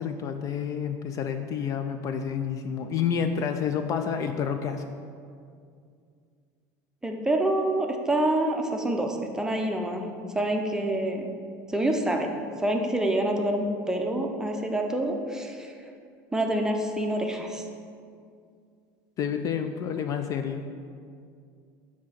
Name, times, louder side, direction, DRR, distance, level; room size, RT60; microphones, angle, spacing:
voice 1, 0.0-4.8 19.2-20.6, left 7 dB, 40° left, 7 dB, 0.3 m, -29 dB
voice 2, 7.0-10.0 10.3-11.3 11.7-15.7 16.3-17.6, right 1 dB, 5° right, 2 dB, 0.6 m, -27 dB
7.4 x 2.8 x 5.9 m, 2.3 s
supercardioid pair, 125°, 9 cm